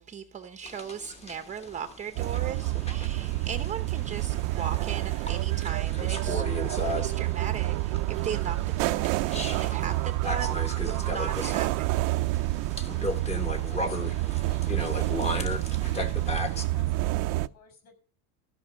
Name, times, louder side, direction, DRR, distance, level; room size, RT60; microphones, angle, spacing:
voice 1, 0.0-10.5 10.8-12.1, right 6 dB, 20° right, 8 dB, 0.8 m, -38 dB
sound 1, 0.6-16.6, left 2 dB, 15° left, 1.2 m, -37 dB
sound 2, 2.2-17.5, right 18 dB, 60° right, 0.6 m, -28 dB
voice 2, 13.7-18.0, left 6 dB, 40° left, 7 dB, 6.4 m, -52 dB
15.0 x 6.1 x 9.9 m, 0.42 s
cardioid pair, 170°, 39 cm